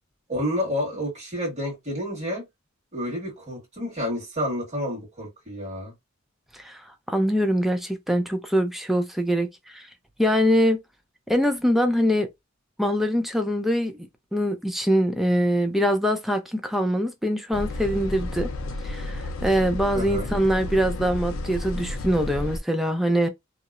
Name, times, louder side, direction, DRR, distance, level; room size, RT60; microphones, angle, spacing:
voice 1, 0.3-2.4 2.9-5.9 19.9-20.3, equal, 35° right, 1.5 m, -29 dB
voice 2, 6.6-9.9 10.2-10.8 11.3-12.3 12.8-18.5 18.8-23.3, equal, ahead, 0.4 m, -23 dB
sound 1, 17.5-22.6, left 1 dB, 75° left, 0.5 m, -32 dB
2.8 x 2.0 x 2.4 m
head